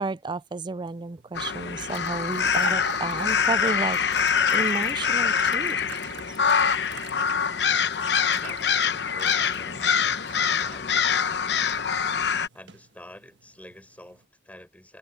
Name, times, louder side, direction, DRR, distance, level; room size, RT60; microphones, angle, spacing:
voice 1, 0.0-5.8 6.3-6.4, right 3 dB, 25° right, 0.4 m, -32 dB
sound 1, 0.9-14.2, right 4 dB, 80° right, 1.5 m, -44 dB
sound 2, 1.3-12.5, left 6 dB, 70° left, 0.9 m, -24 dB
voice 2, 8.3-11.9 12.5-15.0, left 1 dB, 10° left, 7.0 m, -48 dB
head